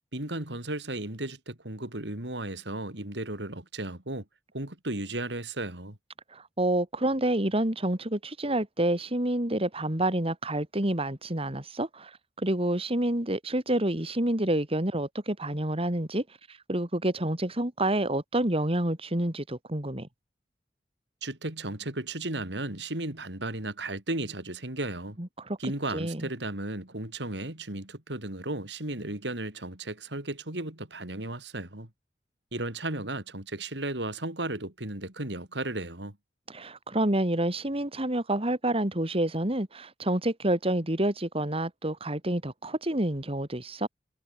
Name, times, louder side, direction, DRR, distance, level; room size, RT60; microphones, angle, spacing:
voice 1, 0.1-4.2 4.5-6.0 21.2-25.2 25.6-31.9 32.5-36.2, right 2 dB, 85° right, 4.3 m, -35 dB
voice 2, 6.3-20.1 25.2-25.6 25.9-26.2 36.5-43.9, right 1 dB, 35° right, 3.3 m, -28 dB
head